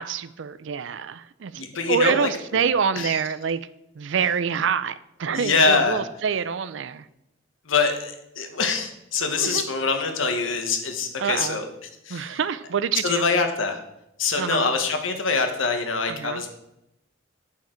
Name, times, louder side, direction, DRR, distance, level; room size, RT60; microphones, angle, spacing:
voice 1, 0.0-3.7 4.0-7.0 9.4-9.7 11.2-11.6 12.1-13.3 14.4-14.7 16.1-16.4, right 6 dB, 65° right, 15 dB, 0.4 m, -26 dB
voice 2, 1.6-2.6 2.9-3.2 5.2-6.0 7.7-12.4 13.0-13.8 14.2-16.5, left 4 dB, 80° left, 6 dB, 1.2 m, -24 dB
8.9 x 5.8 x 4.4 m, 0.85 s
head